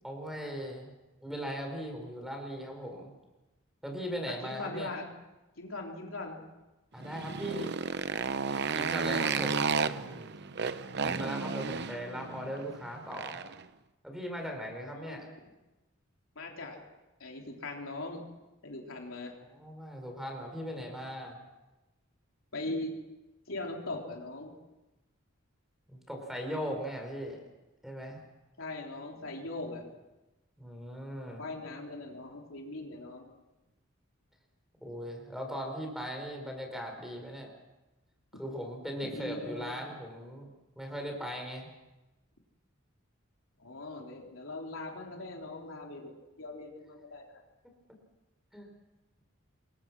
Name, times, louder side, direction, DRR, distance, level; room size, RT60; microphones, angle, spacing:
voice 1, 0.0-0.9 1.2-3.1 3.8-4.9 6.9-7.7 8.7-10.2 11.0-13.4 14.0-15.3 19.4-21.4 25.9-27.4 27.8-28.2 30.6-31.4 34.8-37.5 38.3-40.5 40.7-41.7 48.5-48.7, equal, ahead, 2 dB, 5.0 m, -39 dB
voice 2, 4.3-5.1 5.6-6.4 10.0-10.1 14.8-15.2 16.4-16.8 17.2-18.2 18.6-19.3 22.5-22.9 23.5-24.5 28.6-29.9 31.4-33.3 38.3-38.4 39.0-39.8 43.6-47.4, left 2 dB, 75° left, 1 dB, 3.7 m, -40 dB
Motorcycle, 7.0-13.6, right 5 dB, 55° right, 0.8 m, -33 dB
27.0 x 22.5 x 6.2 m, 1.1 s
head